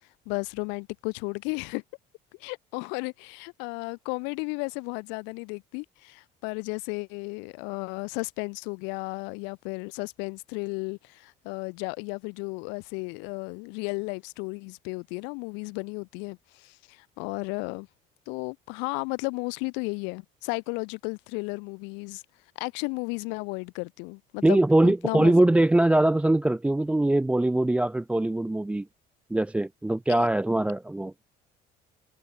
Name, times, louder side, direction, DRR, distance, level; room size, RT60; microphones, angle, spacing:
voice 1, 0.3-1.8 2.4-17.9 18.3-22.2 22.6-25.3 30.2-30.3, left 33 dB, 90° left, 1.0 m, -34 dB
voice 2, 24.4-28.9 29.3-31.1, right 1 dB, 5° right, 0.5 m, -22 dB
cardioid pair, 100°, 18 cm